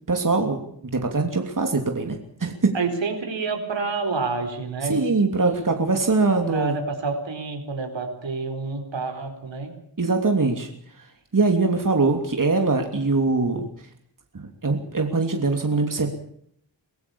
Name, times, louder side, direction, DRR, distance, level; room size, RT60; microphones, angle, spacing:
voice 1, 0.1-2.7 4.9-6.7 10.0-10.7 11.3-13.7 14.3-16.2, right 3 dB, 45° right, 4 dB, 3.0 m, -22 dB
voice 2, 2.7-5.0 6.5-9.7, right 4 dB, 80° right, 5 dB, 4.7 m, -28 dB
24.0 x 16.0 x 7.1 m, 0.67 s
cardioid pair, 60°, 44 cm